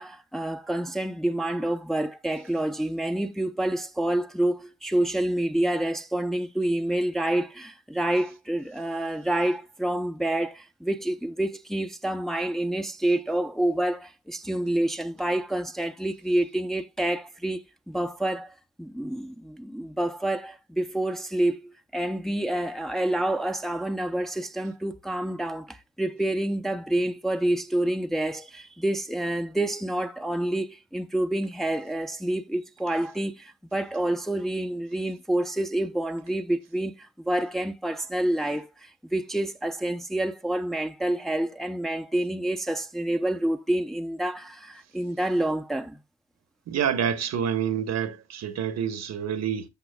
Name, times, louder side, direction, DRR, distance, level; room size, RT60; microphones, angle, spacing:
voice 1, 0.0-17.6 17.9-18.5 18.8-46.0, right 1 dB, ahead, 0.7 m, -28 dB
voice 2, 46.7-49.7, right 8 dB, 60° right, 1.2 m, -27 dB
14.0 x 6.2 x 2.3 m
cardioid pair, 90°, 30 cm